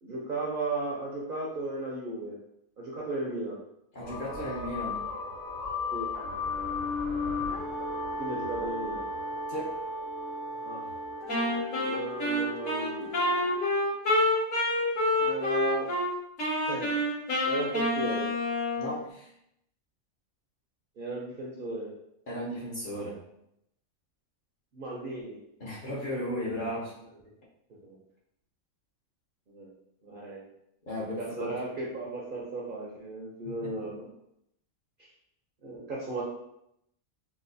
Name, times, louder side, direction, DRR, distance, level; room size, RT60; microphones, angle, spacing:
voice 1, 0.0-2.4 2.8-3.6 5.9-6.1 8.2-9.1 10.6-10.8 11.8-13.3 15.2-15.9 16.6-16.9 17.4-18.3 21.0-21.9 24.7-25.4 27.8-27.9 29.5-29.7 30.0-30.4 31.2-34.1 35.6-36.2, right 2 dB, 55° right, -4 dB, 0.6 m, -35 dB
voice 2, 3.9-5.0 9.5-9.8 18.8-19.3 22.3-23.2 25.6-26.9 30.9-31.5 33.4-33.8, equal, 50° left, -6 dB, 0.7 m, -35 dB
sound 1, 4.0-13.7, left 3 dB, 65° left, 1.2 m, -35 dB
Wind instrument woodwind instrument, 11.3-16.1 16.4-19.0, left 1 dB, 80° left, 2.2 m, -28 dB
4.0 x 2.3 x 2.6 m, 0.79 s
omnidirectional pair, 1.4 m